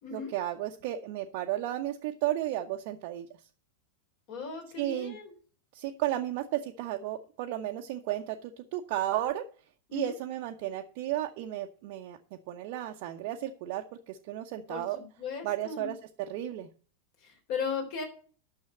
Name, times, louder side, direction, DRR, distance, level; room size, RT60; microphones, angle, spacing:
voice 1, 0.1-3.3 4.8-5.2 5.7-9.4 9.9-12.2 12.5-15.0 15.4-16.7, right 13 dB, 45° right, 2 dB, 0.8 m, -33 dB
voice 2, 4.3-5.3 9.9-10.1 14.7-15.9 17.2-18.0, left 6 dB, 45° left, 3 dB, 3.7 m, -37 dB
9.5 x 6.6 x 7.5 m, 0.41 s
figure-of-eight pair, 90°, 0 cm